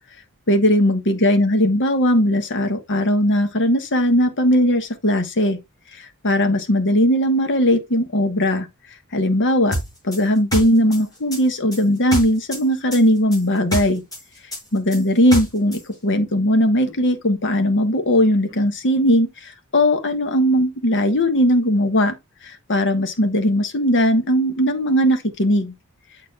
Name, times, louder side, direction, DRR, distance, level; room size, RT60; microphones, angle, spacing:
voice 1, 0.5-5.6 5.9-8.7 9.1-9.8 10.0-14.0 14.7-22.1 22.4-25.7, equal, 55° left, 1.4 m, -18 dB
sound 1, 9.7-12.6 12.9-15.8, equal, 15° left, 5.5 m, -27 dB
8.0 x 6.8 x 2.4 m
head